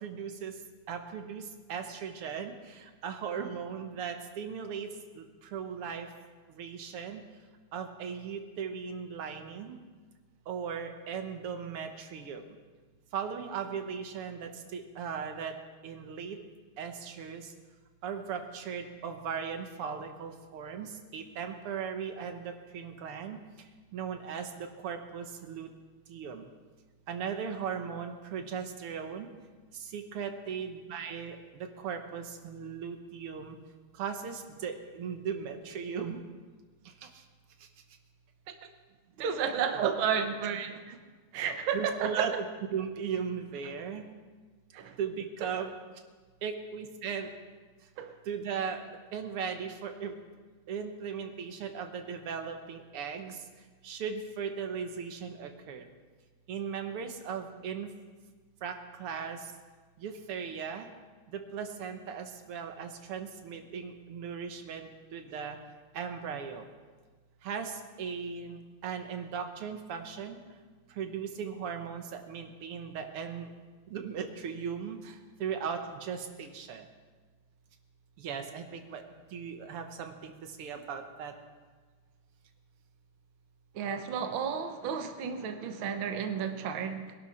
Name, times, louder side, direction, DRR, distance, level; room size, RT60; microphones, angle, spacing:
voice 1, 0.0-0.5 0.9-4.9 5.2-6.1 6.5-7.2 7.7-9.8 10.5-12.4 13.1-15.5 15.8-16.4 16.8-17.5 18.0-23.4 23.9-25.7 26.1-26.5 27.1-29.3 29.7-33.6 34.0-36.2 37.0-37.2 39.2-39.5 39.8-39.9 40.9-41.0 41.3-41.5 41.7-42.5 42.7-44.0 45.0-45.7 46.4-47.3 48.3-48.8 49.1-50.2 50.7-53.4 53.8-55.9 56.5-57.9 58.6-59.5 60.0-60.9 61.3-65.6 65.9-66.7 67.4-70.4 71.0-73.5 73.9-76.9 78.2-79.0 79.3-80.3 80.6-81.3, right 6 dB, 90° right, 6 dB, 2.1 m, -37 dB
voice 2, 39.2-40.8 41.3-42.3 44.7-45.0 45.6-45.7 48.0-48.1 83.8-87.2, right 7 dB, 70° right, 7 dB, 1.7 m, -33 dB
22.0 x 11.5 x 4.4 m, 1.4 s
omnidirectional pair, 2.4 m